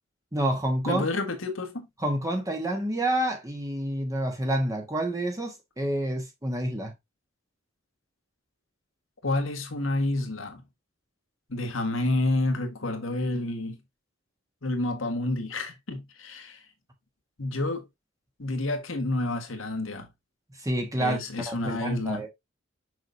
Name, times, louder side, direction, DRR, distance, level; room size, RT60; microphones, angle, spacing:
voice 1, 0.3-1.0 2.0-6.9 20.6-22.3, right 1 dB, 15° right, 1.3 m, -28 dB
voice 2, 0.8-1.9 9.2-10.6 11.5-13.8 14.6-16.6 17.4-17.8 18.4-20.1 21.0-22.3, left 2 dB, 80° left, 1.6 m, -29 dB
6.3 x 5.9 x 2.7 m
head